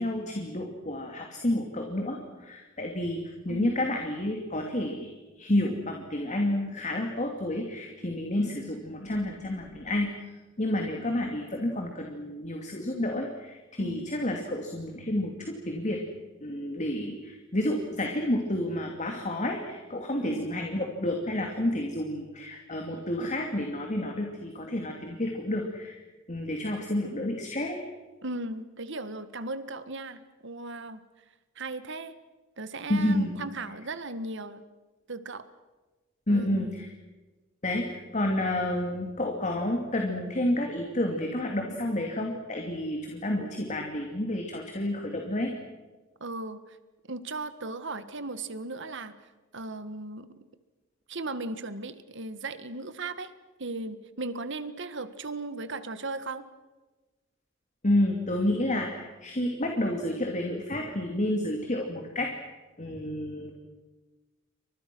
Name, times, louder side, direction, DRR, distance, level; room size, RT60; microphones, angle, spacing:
voice 1, 0.0-10.1 10.6-16.0 16.4-26.0 26.3-27.8 32.9-33.3 36.3-36.9 37.6-45.5 57.8-62.3 62.8-63.5, left 1 dB, 35° left, 2 dB, 2.8 m, -30 dB
voice 2, 3.5-3.8 13.8-14.2 20.2-20.4 28.2-31.0 31.6-32.2 32.6-34.6 35.1-35.5 36.3-36.9 46.2-46.8 47.1-49.1 49.5-50.3 51.1-53.3 53.6-56.4, right 2 dB, 60° right, 12 dB, 1.7 m, -37 dB
30.0 x 25.5 x 6.3 m, 1.2 s
head